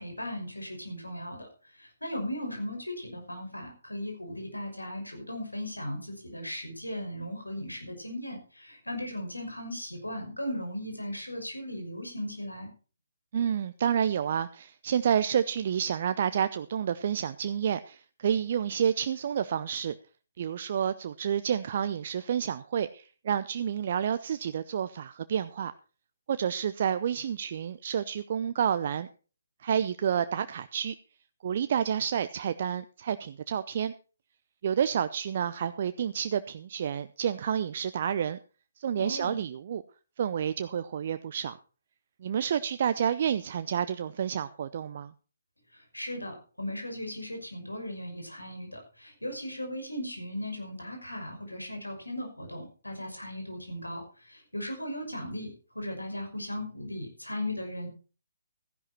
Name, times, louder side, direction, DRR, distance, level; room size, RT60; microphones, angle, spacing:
voice 1, 0.0-12.7 38.9-39.4 45.7-57.9, left 1 dB, 85° left, 3 dB, 5.9 m, -37 dB
voice 2, 13.3-19.9 20.4-25.7 26.3-29.1 29.6-30.9 31.4-33.9 34.6-38.4 38.8-39.8 40.2-41.6 42.2-45.1, right 8 dB, 45° right, 12 dB, 0.6 m, -29 dB
14.5 x 11.0 x 4.4 m, 0.36 s
figure-of-eight pair, 140°, 0 cm